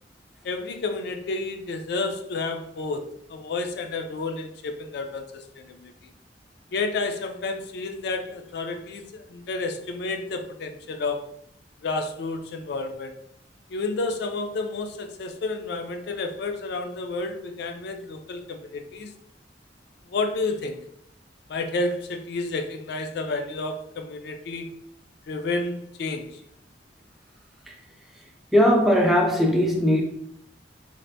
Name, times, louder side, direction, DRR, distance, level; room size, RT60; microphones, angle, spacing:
voice 1, 0.4-5.9 6.7-11.3 11.8-13.1 13.7-19.1 20.1-20.8 21.5-24.8 25.3-26.4, left 3 dB, 65° left, 0.4 m, -30 dB
voice 2, 28.5-30.0, equal, ahead, 0.4 m, -19 dB
3.3 x 2.4 x 2.6 m
head